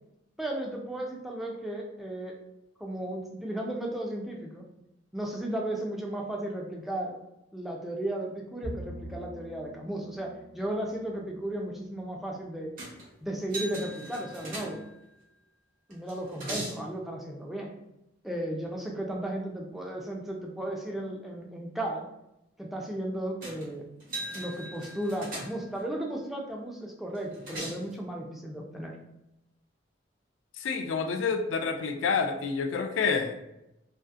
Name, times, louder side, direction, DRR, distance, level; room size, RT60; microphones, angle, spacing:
voice 1, 0.4-2.4 2.8-4.6 5.1-7.2 7.5-12.7 13.2-14.8 15.9-17.7 18.2-22.0 22.6-23.8 24.3-29.0, right 1 dB, ahead, -1 dB, 0.3 m, -35 dB
Bowed string instrument, 8.6-12.1, right 1 dB, 85° right, 0.7 m, -45 dB
sound 1, 12.8-13.1 13.5-15.1 15.9-16.8 23.4-23.7 24.0-25.8 27.1-27.9, right 1 dB, 50° right, 0.9 m, -39 dB
voice 2, 30.6-33.3, left 5 dB, 80° left, 6 dB, 0.3 m, -28 dB
2.6 x 2.4 x 2.4 m, 0.86 s
head